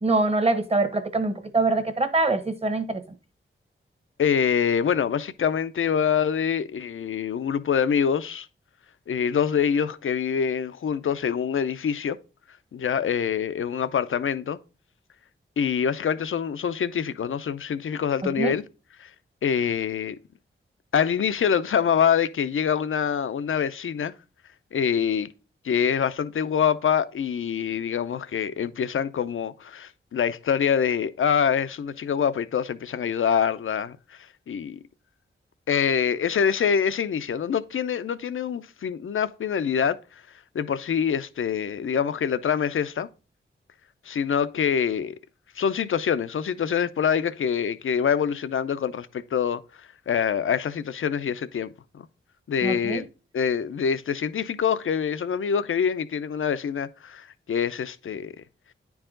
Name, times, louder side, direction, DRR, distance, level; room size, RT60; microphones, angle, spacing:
voice 1, 0.0-3.0 18.4-18.5 52.6-53.0, right 3 dB, 30° right, 1.1 m, -24 dB
voice 2, 4.2-8.5 9.1-12.2 12.7-14.6 15.6-18.6 19.0-19.1 19.4-20.2 20.9-24.1 24.7-25.3 25.6-34.8 35.7-40.0 40.5-43.1 44.0-45.2 45.6-52.1 52.5-53.1 53.3-58.3, left 7 dB, 70° left, 0.6 m, -25 dB
9.7 x 4.7 x 3.8 m
wide cardioid pair, 90°, 21 cm